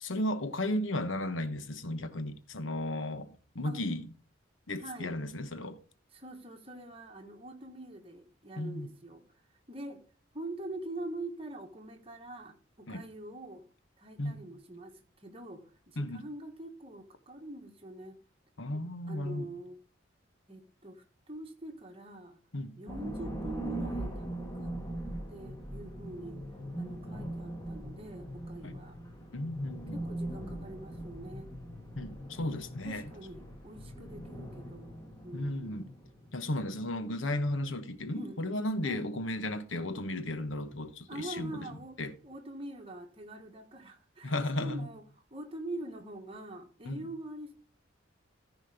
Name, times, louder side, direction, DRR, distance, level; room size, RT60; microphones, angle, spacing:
voice 1, 0.0-4.1 4.7-5.8 8.6-8.9 12.9-13.0 14.2-14.4 16.0-16.3 18.6-19.5 22.5-22.7 28.6-28.7 29.3-30.0 31.9-33.1 35.3-35.9 36.3-41.7 42.0-42.1 44.2-44.9 46.8-47.0, left 1 dB, 75° left, 1.2 m, -34 dB
voice 2, 4.8-5.2 6.1-9.2 9.7-10.0 10.3-13.6 14.0-18.2 18.7-19.8 20.5-22.4 22.7-24.8 25.3-26.4 26.8-29.0 29.9-31.5 32.4-36.0 38.1-38.4 38.8-39.1 41.1-42.0 42.2-45.0 45.3-47.5, right 1 dB, 30° right, 1.5 m, -44 dB
sound 1, 22.9-37.2, right 1 dB, 20° left, 1.8 m, -41 dB
14.5 x 5.2 x 5.0 m
head